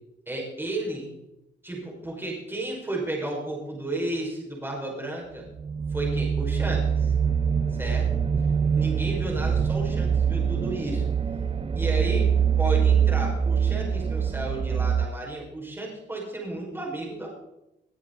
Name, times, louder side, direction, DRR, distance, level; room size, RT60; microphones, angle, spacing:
voice 1, 0.3-1.1 1.6-5.4 5.9-7.1 7.8-8.2 8.7-11.0 11.7-12.3 12.6-17.3, right 2 dB, 10° right, -2 dB, 5.9 m, -33 dB
sound 1, 5.6-15.1, right 7 dB, 30° right, 0.6 m, -24 dB
20.0 x 9.6 x 4.2 m, 0.89 s
cardioid pair, 90°, 20 cm